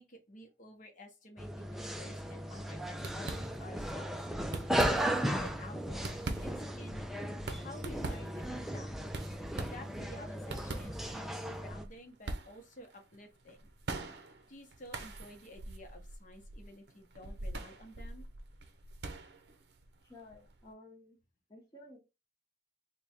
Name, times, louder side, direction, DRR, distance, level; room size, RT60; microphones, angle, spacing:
voice 1, 0.0-8.9 9.7-13.6 14.5-18.3, left 1 dB, 45° left, 0.9 m, -52 dB
sound 1, 1.4-11.8, equal, ahead, 0.3 m, -36 dB
sound 2, 2.0-2.3 2.6-2.7 3.0-3.9 4.4-5.3 5.8-20.7, right 2 dB, 65° right, 0.6 m, -43 dB
voice 2, 20.0-21.2 21.5-22.0, left 2 dB, 25° left, 0.9 m, -54 dB
3.4 x 2.3 x 4.2 m
head